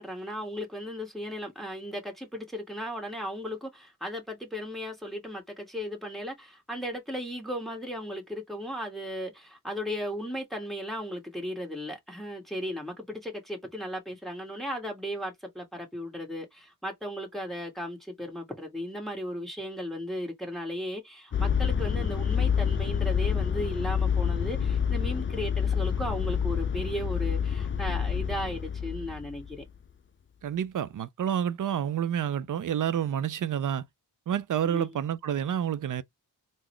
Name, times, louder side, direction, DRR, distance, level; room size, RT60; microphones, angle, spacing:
voice 1, 0.0-29.6 34.6-34.9, equal, ahead, 1.4 m, -36 dB
sound 1, 21.3-29.6, left 7 dB, 30° left, 0.4 m, -28 dB
voice 2, 30.4-33.8 34.3-36.0, right 9 dB, 50° right, 0.5 m, -29 dB
3.8 x 2.0 x 3.1 m
cardioid pair, 50°, 40 cm